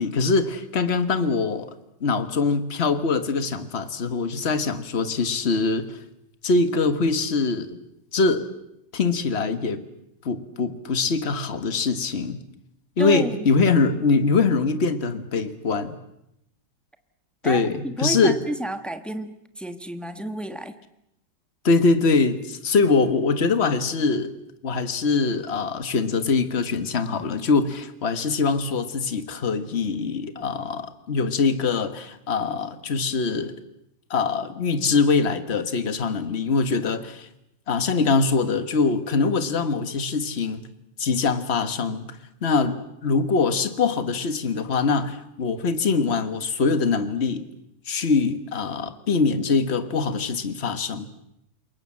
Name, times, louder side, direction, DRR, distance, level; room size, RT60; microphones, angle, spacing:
voice 1, 0.0-1.7 2.0-6.0 6.4-7.8 8.1-8.5 8.9-9.8 10.2-12.4 13.0-16.0 17.4-18.4 21.6-24.3 24.6-33.6 34.1-37.3 37.7-40.6 41.0-47.5 47.9-51.1, left 4 dB, 35° left, 1.6 m, -23 dB
voice 2, 13.0-13.6 17.4-20.7, right 1 dB, ahead, 1.1 m, -31 dB
28.0 x 22.5 x 7.7 m
omnidirectional pair, 2.0 m